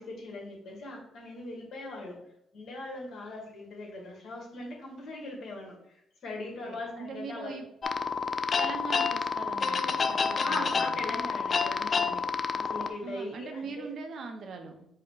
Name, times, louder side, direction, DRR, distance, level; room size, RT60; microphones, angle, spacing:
voice 1, 0.0-2.2 2.5-7.6 10.4-13.9, left 2 dB, 65° left, -1 dB, 1.4 m, -40 dB
voice 2, 6.4-7.7 8.6-11.0 13.0-14.9, right 5 dB, 60° right, 5 dB, 0.7 m, -41 dB
sound 1, 7.8-12.9, left 5 dB, 45° left, 0.3 m, -29 dB
4.7 x 2.1 x 4.6 m, 0.77 s
cardioid pair, 90°, 0 cm